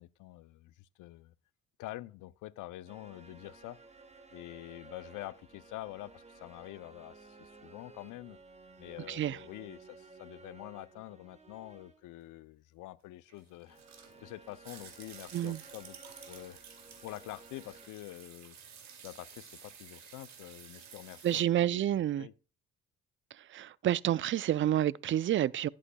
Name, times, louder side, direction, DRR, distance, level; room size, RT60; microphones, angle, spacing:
voice 1, 0.0-1.3 1.8-3.8 4.3-8.4 8.8-13.8 14.2-16.0 16.3-16.6 17.0-18.6 19.0-22.3, left 16 dB, 85° left, 0.6 m, -46 dB
sound 1, 2.9-12.1 13.6-17.9, right 3 dB, 20° right, 1.5 m, -55 dB
voice 2, 9.1-9.4 15.3-15.6 21.2-22.3 23.4-25.7, right 12 dB, 40° right, 0.4 m, -29 dB
sound 2, 13.3-21.4, right 7 dB, 65° right, 2.5 m, -53 dB
11.0 x 8.6 x 2.2 m
cardioid pair, 90°, 30 cm